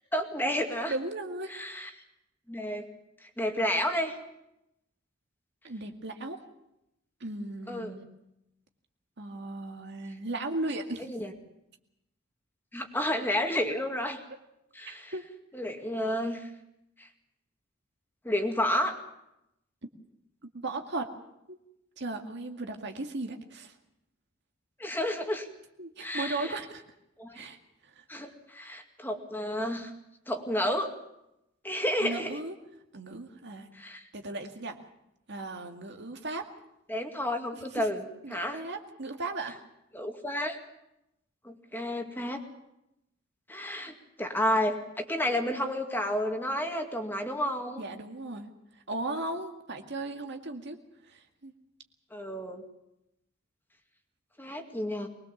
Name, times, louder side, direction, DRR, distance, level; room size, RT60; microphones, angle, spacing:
voice 1, 0.1-0.9 1.5-1.9 2.5-2.8 3.4-4.1 7.7-8.0 11.1-11.3 12.7-14.2 14.7-15.1 15.5-16.5 17.0-17.1 18.2-19.0 24.8-25.5 26.0-26.5 27.2-27.4 28.1-29.9 30.3-30.9 31.6-32.4 33.7-34.0 36.9-38.0 38.3-38.6 39.9-40.6 41.4-42.4 43.5-47.8 52.1-52.6 54.4-55.1, left 1 dB, 10° left, 4 dB, 2.2 m, -31 dB
voice 2, 0.9-1.5 5.6-6.4 7.2-8.1 9.2-11.1 14.9-15.3 20.5-21.1 21.5-21.6 22.0-23.8 25.8-26.8 27.3-27.6 27.9-28.0 32.0-32.6 32.9-33.7 34.1-34.8 35.3-36.5 37.5-37.9 38.2-39.6 47.8-48.5 48.9-50.8 51.1-51.5, right 2 dB, 60° right, 4 dB, 2.1 m, -36 dB
23.0 x 20.5 x 7.3 m, 0.84 s
head